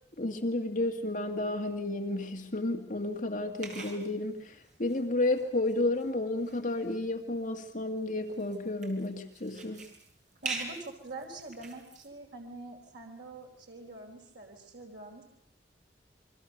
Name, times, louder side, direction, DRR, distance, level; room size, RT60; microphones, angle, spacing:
voice 1, 0.2-9.9, left 2 dB, 45° left, 3 dB, 2.1 m, -32 dB
sound 1, 3.6-12.1, right 3 dB, 45° right, 5.4 m, -45 dB
voice 2, 10.4-15.2, right 2 dB, 80° right, 1 dB, 4.3 m, -45 dB
29.0 x 23.0 x 6.8 m, 0.70 s
head